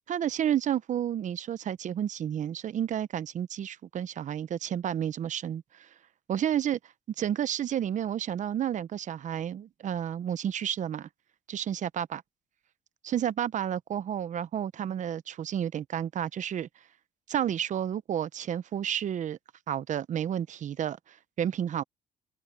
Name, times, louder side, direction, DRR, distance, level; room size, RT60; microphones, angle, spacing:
voice 1, 0.1-5.9 6.3-6.8 7.2-11.1 11.5-12.2 13.0-16.7 17.3-19.4 19.7-21.8, right 10 dB, 45° right, 0.8 m, -31 dB
open air
cardioid pair, 110°, 17 cm